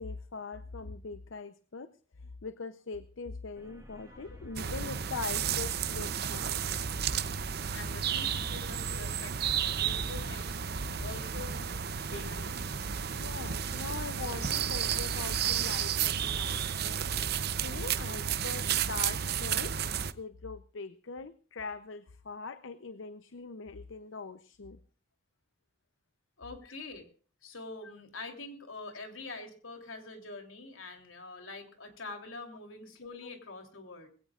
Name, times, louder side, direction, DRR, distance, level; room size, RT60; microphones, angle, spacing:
voice 1, 0.0-1.9 2.2-6.6 13.2-17.0 17.6-19.7 20.1-24.8 26.6-26.7 33.2-33.3, left 4 dB, 75° left, 12 dB, 0.7 m, -42 dB
sound 1, 3.5-8.8, equal, 15° right, 1.6 m, -56 dB
sound 2, 4.6-20.1, right 8 dB, 50° right, 0.7 m, -32 dB
voice 2, 7.7-13.0 26.4-27.1 27.4-34.1, left 3 dB, 90° left, 4 dB, 3.3 m, -45 dB
21.5 x 16.5 x 2.5 m, 0.41 s
head